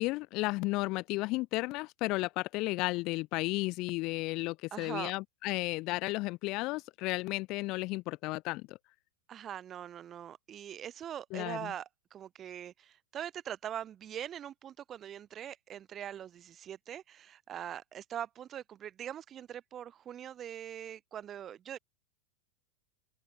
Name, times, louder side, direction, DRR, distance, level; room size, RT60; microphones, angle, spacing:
voice 1, 0.0-8.8 11.3-11.7, left 22 dB, 40° left, 1.1 m, -33 dB
voice 2, 4.7-5.1 9.3-21.8, right 10 dB, 25° right, 0.5 m, -42 dB
open air
figure-of-eight pair, 90°, 0 cm